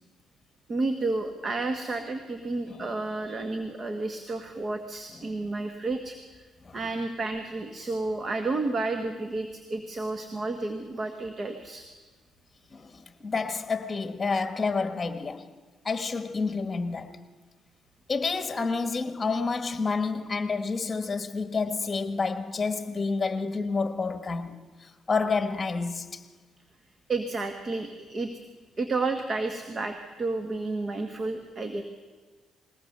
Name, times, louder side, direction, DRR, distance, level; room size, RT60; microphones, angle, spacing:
voice 1, 0.7-6.2 6.7-11.8 27.1-28.3 28.8-31.8, right 3 dB, 40° right, 1.6 m, -31 dB
voice 2, 13.2-15.5 15.8-17.2 18.1-26.2, left 4 dB, 30° left, 1.5 m, -29 dB
21.5 x 18.0 x 6.7 m
cardioid pair, 90°, 0 cm